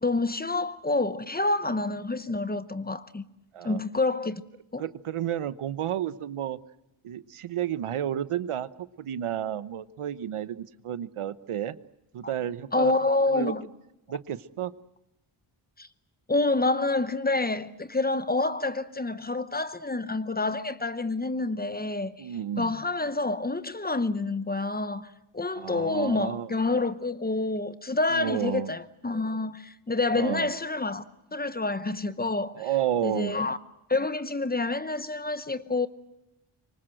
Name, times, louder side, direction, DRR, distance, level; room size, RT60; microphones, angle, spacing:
voice 1, 0.0-3.3 3.6-4.4 4.7-4.8 12.2-12.3 12.7-13.6 15.8-15.9 16.3-22.3 22.6-25.1 25.3-31.0 31.3-32.6 33.0-33.6 33.9-35.9, left 2 dB, 20° left, 0.8 m, -28 dB
voice 2, 4.8-6.6 7.0-11.7 12.1-12.9 13.2-13.5 14.1-14.7 22.2-22.7 25.6-26.5 28.1-28.7 30.1-30.5 32.5-33.4, right 10 dB, 80° right, 1.1 m, -31 dB
26.0 x 24.0 x 7.7 m
wide cardioid pair, 160°, 49 cm